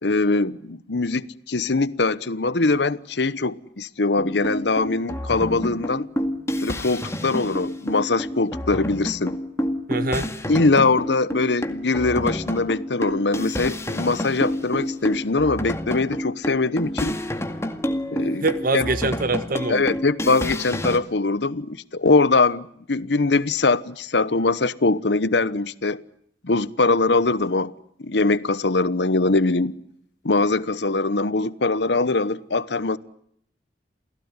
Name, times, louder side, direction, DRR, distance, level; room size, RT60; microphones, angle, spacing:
voice 1, 0.0-6.1 6.6-9.4 10.5-17.1 18.1-18.5 18.7-18.9 19.7-26.0 26.4-27.7 28.0-29.7 30.2-33.0, left 3 dB, 70° left, 1.0 m, -22 dB
sound 1, 4.2-21.0, equal, 15° left, 2.0 m, -29 dB
voice 2, 9.9-10.3 18.4-20.0, right 3 dB, 55° right, 1.5 m, -24 dB
29.0 x 17.5 x 9.6 m
head